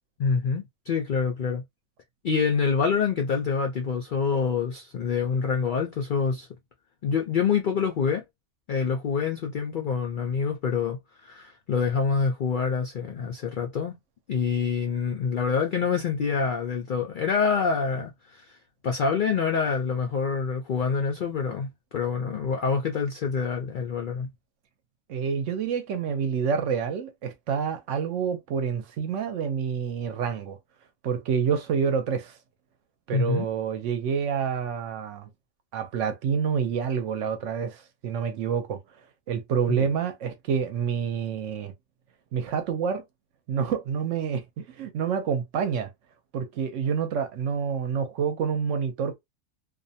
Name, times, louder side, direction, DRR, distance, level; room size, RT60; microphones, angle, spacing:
voice 1, 0.2-1.6 2.2-6.5 7.0-8.2 8.7-14.0 14.3-18.6 18.8-24.3 33.1-33.5 39.7-39.9, left 5 dB, 70° left, 0.4 m, -26 dB
voice 2, 25.1-30.6 31.0-32.4 33.1-35.3 35.7-38.8 39.3-41.7 42.3-43.0 43.5-45.9 46.3-49.2, right 7 dB, 70° right, 0.9 m, -28 dB
2.5 x 2.1 x 2.6 m
omnidirectional pair, 1.4 m